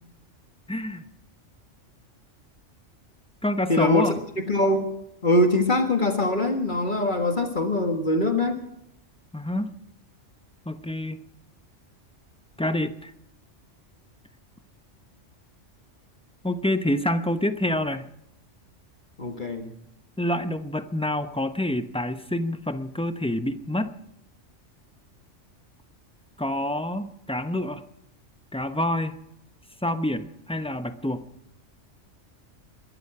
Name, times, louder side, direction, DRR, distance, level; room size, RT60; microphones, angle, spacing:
voice 1, 0.7-1.0 3.4-4.2 9.3-9.7 10.7-11.2 12.6-13.1 16.4-18.1 20.2-24.0 26.4-27.8 28.5-29.1 29.8-31.3, left 1 dB, 5° left, 10 dB, 0.6 m, -27 dB
voice 2, 3.7-4.9 5.2-8.6 19.2-19.7, left 1 dB, 40° left, 5 dB, 1.7 m, -23 dB
22.0 x 13.0 x 4.8 m, 0.78 s
omnidirectional pair, 1.3 m